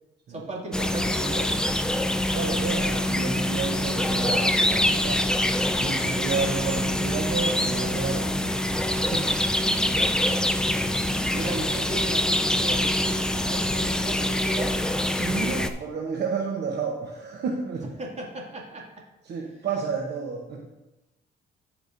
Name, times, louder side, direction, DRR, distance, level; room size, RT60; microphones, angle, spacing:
voice 1, 0.3-1.6 11.3-14.8 18.0-19.0, right 2 dB, 35° right, -2 dB, 2.3 m, -36 dB
sound 1, 0.7-15.7, left 1 dB, 5° left, 0.4 m, -25 dB
voice 2, 2.3-5.3 5.8-8.7 9.0-9.3 9.8-10.1 11.1-11.2 15.2-17.9 19.3-20.7, right 5 dB, 55° right, 1 dB, 0.9 m, -31 dB
15.0 x 5.0 x 2.6 m, 1.0 s
cardioid pair, 90°, 20 cm